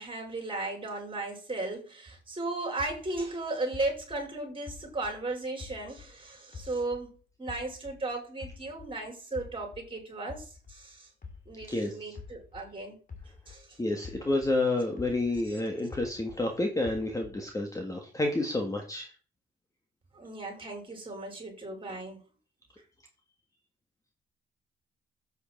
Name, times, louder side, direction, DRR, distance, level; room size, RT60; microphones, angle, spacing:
voice 1, 0.0-11.1 11.5-13.0 13.5-13.8 15.4-15.6 20.1-22.2, right 2 dB, 25° right, 5.5 m, -36 dB
sound 1, 2.8-6.2 6.5-9.0 9.3-13.7 14.0-16.5 16.8-17.5, left 5 dB, 45° left, 2.7 m, -47 dB
voice 2, 13.8-19.1, left 2 dB, 15° left, 1.8 m, -29 dB
8.2 x 8.0 x 4.6 m
cardioid pair, 90°, 20 cm